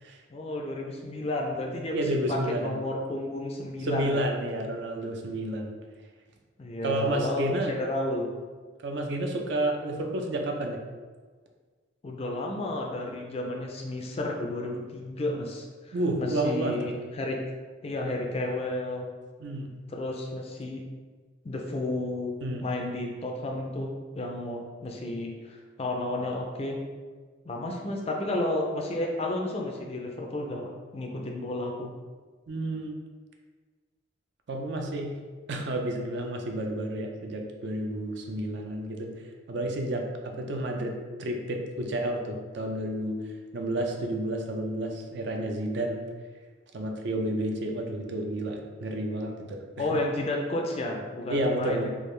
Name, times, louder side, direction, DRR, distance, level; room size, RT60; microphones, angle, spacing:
voice 1, 0.3-2.0 2.3-4.3 6.6-8.3 12.0-17.4 17.8-19.1 19.9-20.8 21.4-26.8 27.4-31.9 49.8-51.9, left 1 dB, 30° left, 1 dB, 0.4 m, -32 dB
voice 2, 1.9-2.8 3.8-5.7 6.8-7.8 8.8-10.8 15.9-16.8 19.4-19.7 22.4-22.6 32.5-32.9 34.5-35.1 35.5-39.1 39.5-40.9 41.2-43.2 43.5-46.0 46.7-50.0 51.3-51.9, right 1 dB, 60° right, 2 dB, 0.4 m, -30 dB
3.5 x 2.3 x 3.2 m, 1.5 s
head